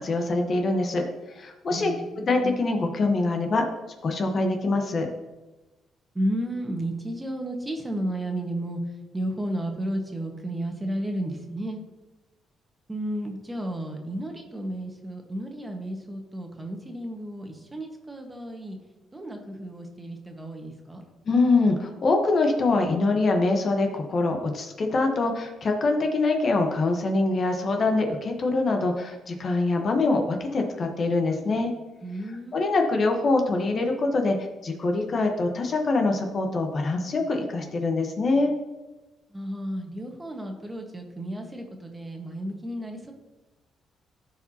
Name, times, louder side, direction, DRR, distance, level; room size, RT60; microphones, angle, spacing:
voice 1, 0.0-1.9 2.3-3.7 4.0-5.1 21.3-31.7 32.5-34.4 34.6-38.5, left 3 dB, 45° left, 3 dB, 1.2 m, -24 dB
voice 2, 1.7-2.6 6.1-8.8 9.1-11.8 12.9-18.8 19.1-21.0 32.0-32.7 39.3-43.1, right 1 dB, 15° right, 2 dB, 1.5 m, -33 dB
14.0 x 4.8 x 2.9 m, 1.1 s
cardioid pair, 90°, 0 cm